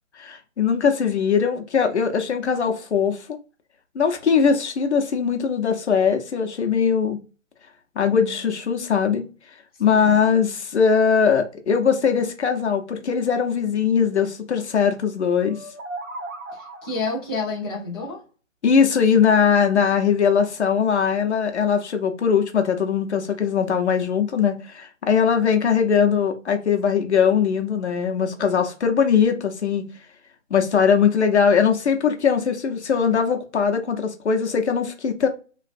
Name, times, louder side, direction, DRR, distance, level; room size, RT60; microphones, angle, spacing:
voice 1, 0.1-3.4 3.9-7.2 8.0-9.2 9.8-15.6 18.6-29.8 30.5-35.3, left 6 dB, 60° left, 0.8 m, -20 dB
voice 2, 9.8-10.2 16.5-18.2, left 3 dB, 20° left, 0.7 m, -29 dB
sound 1, 15.4-17.2, right 2 dB, 75° right, 1.0 m, -36 dB
3.1 x 2.5 x 2.4 m
hypercardioid pair, 160°, 39 cm